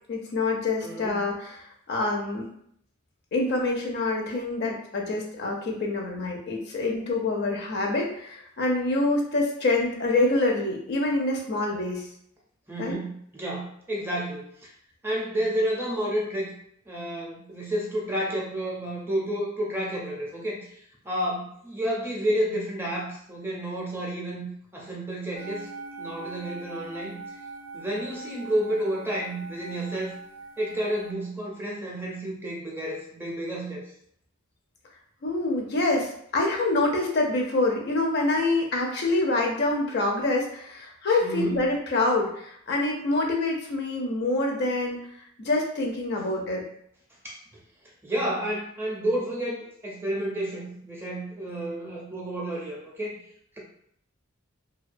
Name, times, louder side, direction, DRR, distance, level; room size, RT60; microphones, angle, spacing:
voice 1, 0.1-2.5 3.3-12.1 12.8-12.9 35.2-45.0 45.4-46.6, left 2 dB, 55° left, 0 dB, 0.5 m, -26 dB
voice 2, 0.8-1.2 12.7-14.7 15.0-16.5 16.9-24.5 24.7-25.7 26.0-27.2 27.7-30.1 30.6-33.8 41.2-41.6 47.2-47.4 48.0-53.2, right 1 dB, 10° right, -3 dB, 0.5 m, -30 dB
sound 1, 25.4-31.1, right 3 dB, 70° right, 0.3 m, -42 dB
2.2 x 2.2 x 2.5 m, 0.68 s
head